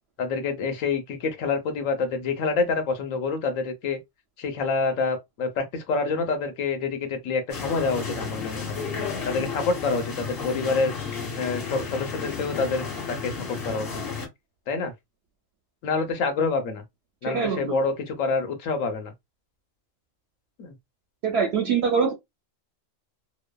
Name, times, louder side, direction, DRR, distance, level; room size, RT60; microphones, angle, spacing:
voice 1, 0.2-4.0 4.4-8.8 9.2-10.9 11.4-14.0 14.7-14.9 15.8-16.8 17.2-19.1 20.6-20.7, left 4 dB, 80° left, 1.1 m, -27 dB
sound 1, 7.5-14.3, left 5 dB, 50° left, 1.2 m, -32 dB
voice 2, 17.3-17.8 21.2-22.1, right 6 dB, 65° right, 0.7 m, -23 dB
3.0 x 2.1 x 2.2 m
omnidirectional pair, 1.4 m